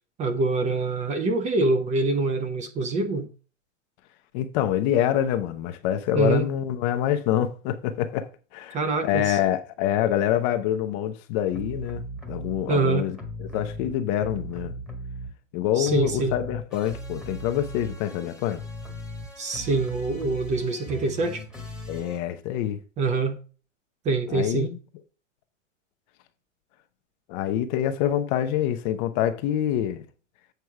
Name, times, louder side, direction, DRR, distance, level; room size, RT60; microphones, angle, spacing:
voice 1, 0.2-3.3 6.1-6.5 8.7-9.4 12.7-13.1 15.7-16.3 19.4-21.4 23.0-23.4 24.0-24.7, right 3 dB, 20° right, 0.6 m, -25 dB
voice 2, 4.3-8.8 9.0-13.1 13.5-14.7 15.5-18.6 21.9-22.8 24.3-24.8 27.3-30.0, left 11 dB, 35° left, 0.7 m, -26 dB
sound 1, 11.5-12.7 13.1-15.6 15.8-22.2, equal, ahead, 1.4 m, -38 dB
8.0 x 4.5 x 4.7 m
hypercardioid pair, 135°, 38 cm